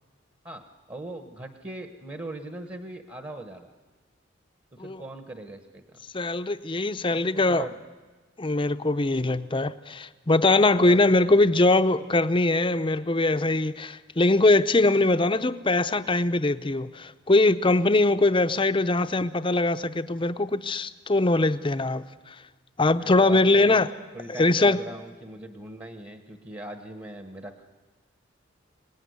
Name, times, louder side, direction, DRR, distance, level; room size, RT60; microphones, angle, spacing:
voice 1, 0.9-3.7 4.8-5.8 7.0-7.7 10.7-11.5 23.0-23.8 24.1-27.7, right 1 dB, 25° right, 6 dB, 1.3 m, -40 dB
voice 2, 6.1-7.7 8.4-22.4 22.8-23.9 24.3-24.8, left 2 dB, 25° left, 11 dB, 0.7 m, -22 dB
25.0 x 19.0 x 9.5 m, 1.3 s
head